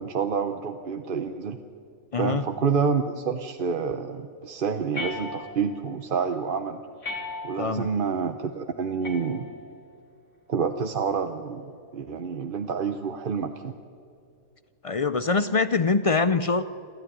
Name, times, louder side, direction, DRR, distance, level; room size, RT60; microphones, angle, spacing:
voice 1, 0.0-1.6 2.2-6.8 7.4-9.5 10.5-13.8, right 6 dB, 45° right, 7 dB, 0.9 m, -28 dB
voice 2, 2.1-2.4 7.6-7.9 14.8-16.6, left 4 dB, 60° left, 13 dB, 0.3 m, -23 dB
sound 1, 4.9-5.8 7.0-7.8 9.0-9.8, left 2 dB, 80° left, 3.1 m, -37 dB
27.5 x 14.0 x 9.9 m, 2.5 s
omnidirectional pair, 1.4 m